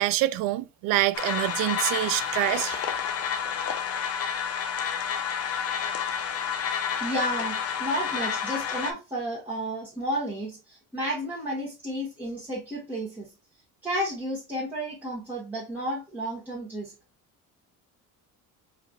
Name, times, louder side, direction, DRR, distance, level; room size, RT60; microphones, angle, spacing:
voice 1, 0.0-2.8, right 16 dB, 85° right, 0.5 m, -26 dB
sound 1, 1.1-8.9, left 7 dB, 45° left, 0.7 m, -30 dB
voice 2, 7.0-13.3 13.8-16.9, equal, 5° right, 1.8 m, -32 dB
4.8 x 3.2 x 2.5 m
cardioid pair, 120°, 33 cm